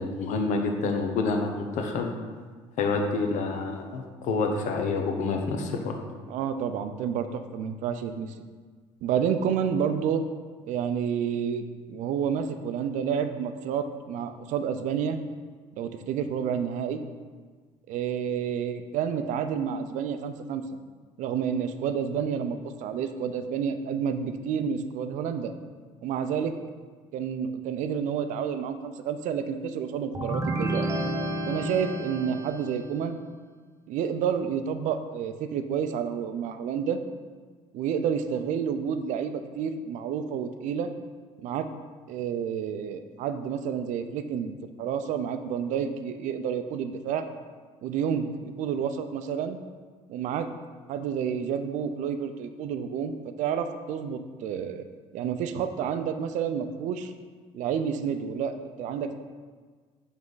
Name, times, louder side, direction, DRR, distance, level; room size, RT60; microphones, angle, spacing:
voice 1, 0.0-2.1 2.8-5.9, left 3 dB, 70° left, 3 dB, 0.9 m, -28 dB
voice 2, 6.3-8.3 9.0-10.2 10.6-15.2 15.8-17.0 17.9-20.6 21.2-25.5 26.0-26.5 27.1-30.9 31.5-33.2 33.9-37.0 37.7-40.9 41.4-41.7 42.1-47.3 47.8-49.6 50.1-50.5 50.9-54.8 55.1-57.1 57.5-59.1, right 7 dB, 75° right, 9 dB, 0.5 m, -29 dB
sound 1, 30.2-33.0, right 1 dB, 25° right, 0.8 m, -30 dB
7.4 x 3.5 x 3.9 m, 1.5 s
cardioid pair, 100°, 13 cm